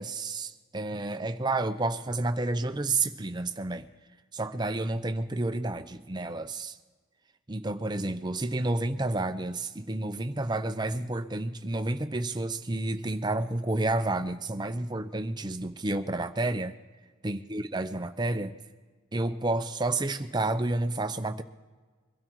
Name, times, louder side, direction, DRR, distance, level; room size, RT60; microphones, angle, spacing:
voice 1, 0.0-3.9 4.3-6.8 7.5-16.8 17.2-18.6 19.1-21.4, right 2 dB, 20° right, 9 dB, 0.6 m, -30 dB
22.5 x 12.5 x 4.6 m, 1.4 s
head